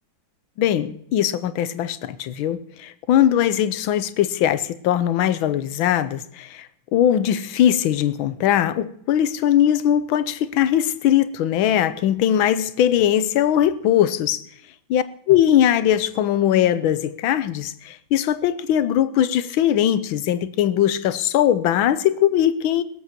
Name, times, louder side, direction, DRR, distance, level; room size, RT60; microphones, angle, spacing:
voice 1, 0.6-6.7 6.9-14.4 14.9-22.8, left 10 dB, 80° left, 1.5 m, -20 dB
20.5 x 7.9 x 5.9 m
omnidirectional pair, 2.2 m